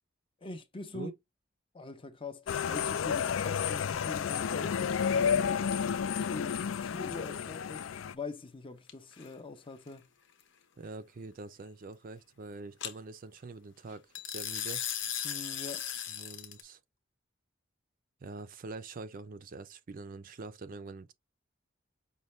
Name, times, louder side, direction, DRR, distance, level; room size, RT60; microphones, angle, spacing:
voice 1, 0.4-1.1 1.7-5.7 6.0-10.1 15.2-15.9, left 3 dB, 25° left, 0.6 m, -44 dB
sound 1, 2.5-8.1, left 7 dB, 80° left, 0.4 m, -31 dB
sound 2, 8.9-9.3 12.8-12.9 14.1-16.6, left 9 dB, 65° left, 0.9 m, -36 dB
voice 2, 10.8-14.8 16.1-16.8 18.2-21.1, right 3 dB, 45° right, 0.5 m, -44 dB
5.4 x 2.2 x 3.1 m
head